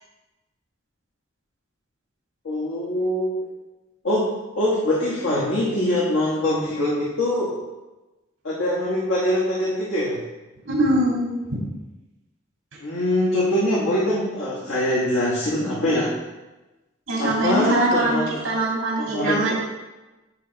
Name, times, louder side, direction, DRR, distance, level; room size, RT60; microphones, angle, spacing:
voice 1, 2.4-3.4 4.0-4.3 4.6-7.5 8.4-10.2 12.8-16.1 17.2-18.3 19.0-19.5, left 1 dB, 80° left, -6 dB, 1.2 m, -23 dB
voice 2, 10.7-11.3 17.1-19.5, right 1 dB, 70° right, -4 dB, 2.1 m, -22 dB
9.1 x 3.0 x 4.4 m, 1.1 s
head